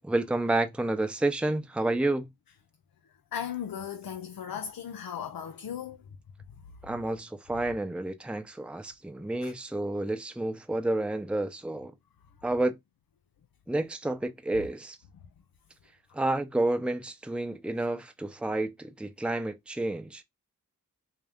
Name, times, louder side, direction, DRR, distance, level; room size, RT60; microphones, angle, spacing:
voice 1, 0.0-2.3 6.8-11.9 12.4-12.8 13.7-15.0 16.1-20.2, right 2 dB, 5° right, 0.7 m, -30 dB
voice 2, 3.3-6.0 9.4-9.5, left 8 dB, 75° left, 0.6 m, -36 dB
3.7 x 2.7 x 3.5 m
cardioid pair, 45°, 35 cm